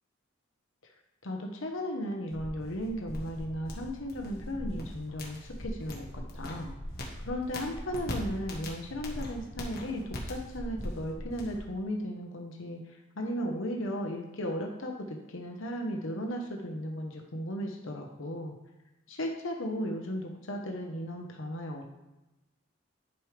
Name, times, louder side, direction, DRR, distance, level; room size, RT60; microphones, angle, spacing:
voice 1, 1.2-6.8 7.2-18.5 19.1-21.9, equal, 70° left, 1 dB, 1.0 m, -36 dB
sound 1, 2.3-11.6, left 1 dB, 50° left, 1.5 m, -40 dB
11.0 x 5.0 x 3.3 m, 0.98 s
head